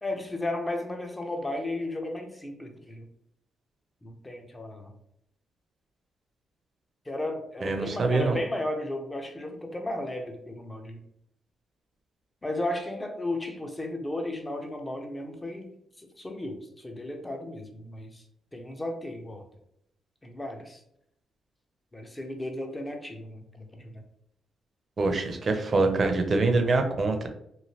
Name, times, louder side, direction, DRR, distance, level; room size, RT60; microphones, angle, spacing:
voice 1, 0.0-3.1 4.0-4.9 7.1-11.0 12.4-15.7 16.2-18.2 18.5-19.4 20.2-20.8 21.9-23.9, left 1 dB, 20° left, 4 dB, 0.6 m, -34 dB
voice 2, 7.6-8.4 25.0-27.3, right 3 dB, 45° right, 6 dB, 0.6 m, -24 dB
3.1 x 2.5 x 2.8 m, 0.76 s
cardioid pair, 85°, 0 cm